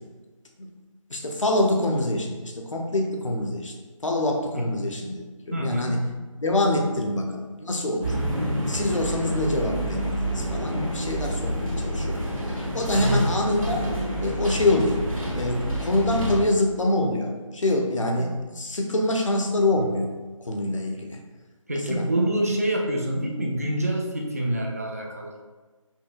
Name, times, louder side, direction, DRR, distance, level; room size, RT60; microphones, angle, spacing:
voice 1, 1.1-3.7 4.0-6.0 6.4-8.1 8.5-12.3 12.7-13.8 14.2-15.0 15.4-20.1 20.4-21.2 21.7-22.1, left 2 dB, 65° left, 2 dB, 0.7 m, -25 dB
voice 2, 5.5-6.0 12.9-13.2 18.2-18.3 21.7-25.3, right 1 dB, 30° right, 0 dB, 0.4 m, -26 dB
sound 1, 8.0-16.4, right 1 dB, 80° right, 1.4 m, -28 dB
5.5 x 2.7 x 2.4 m, 1.3 s
figure-of-eight pair, 160°, 17 cm